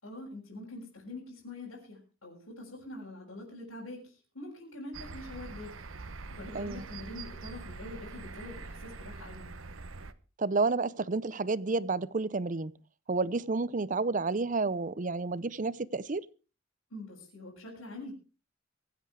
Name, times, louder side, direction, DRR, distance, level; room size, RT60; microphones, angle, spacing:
voice 1, 0.0-5.8 6.3-9.4 16.9-18.1, left 2 dB, 85° left, 6.4 m, -45 dB
sound 1, 4.9-10.1, right 3 dB, 80° right, 1.1 m, -44 dB
voice 2, 6.5-6.9 10.4-12.7 13.1-16.2, right 3 dB, 40° right, 0.7 m, -30 dB
24.0 x 8.3 x 4.8 m
head